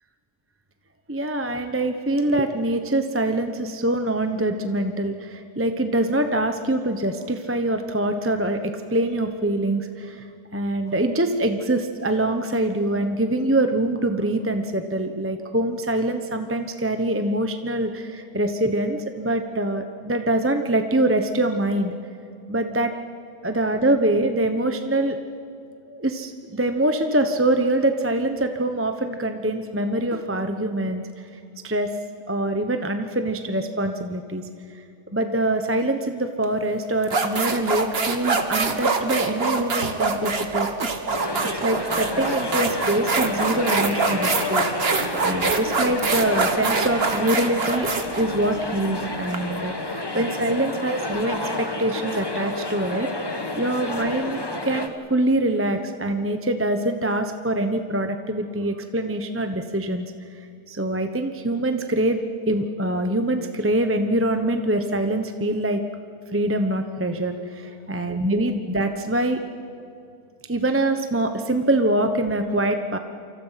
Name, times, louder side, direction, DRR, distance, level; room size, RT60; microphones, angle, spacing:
voice 1, 1.1-10.2 10.5-22.0 22.5-22.9 23.4-25.2 25.9-31.3 31.6-31.9 32.3-34.4 35.1-40.9 41.5-60.1 60.7-65.8 66.3-69.4 70.5-73.0, right 1 dB, 10° right, 6 dB, 0.8 m, -24 dB
sound 1, 36.4-36.6 37.0-49.4, right 4 dB, 40° right, 1.6 m, -24 dB
sound 2, 41.1-54.9, left 2 dB, 15° left, 1.2 m, -30 dB
28.5 x 25.0 x 5.9 m, 2.4 s
omnidirectional pair, 1.7 m